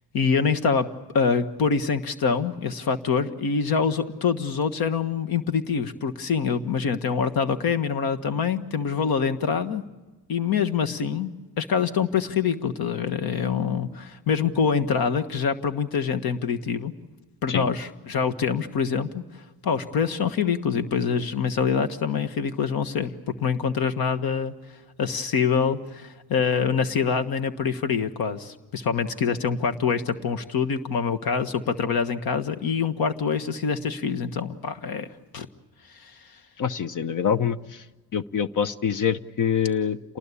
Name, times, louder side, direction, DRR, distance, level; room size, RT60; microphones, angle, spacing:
voice 1, 0.1-0.9 1.1-9.8 10.3-11.3 11.6-16.9 17.4-19.2 19.6-23.1 23.4-24.5 25.0-35.1 35.3-35.5 35.9-36.1, left 6 dB, 70° left, 9 dB, 1.5 m, -25 dB
voice 2, 36.6-37.8 38.1-40.2, left 7 dB, 55° left, 15 dB, 0.9 m, -25 dB
28.0 x 20.0 x 8.4 m, 1.2 s
cardioid pair, 105°, 38 cm